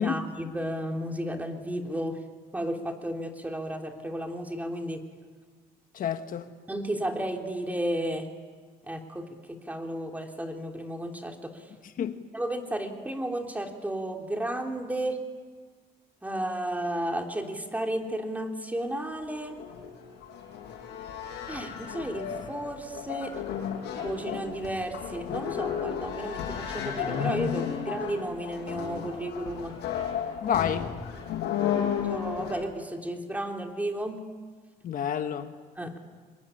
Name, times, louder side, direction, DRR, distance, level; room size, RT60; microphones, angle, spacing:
voice 1, 0.0-2.2 2.5-5.0 6.7-8.3 8.9-9.2 9.7-11.5 12.3-15.2 16.2-19.5 21.5-23.3 24.0-26.4 26.7-29.7 32.1-34.2 35.8-36.0, right 1 dB, 10° right, 3 dB, 3.3 m, -33 dB
voice 2, 5.9-6.5 12.0-12.2 30.4-30.9 34.8-35.5, left 8 dB, 55° left, 8 dB, 1.4 m, -29 dB
sound 1, 19.1-32.6, left 8 dB, 80° left, 6.2 m, -33 dB
25.0 x 21.0 x 9.9 m, 1.5 s
cardioid pair, 110°, 17 cm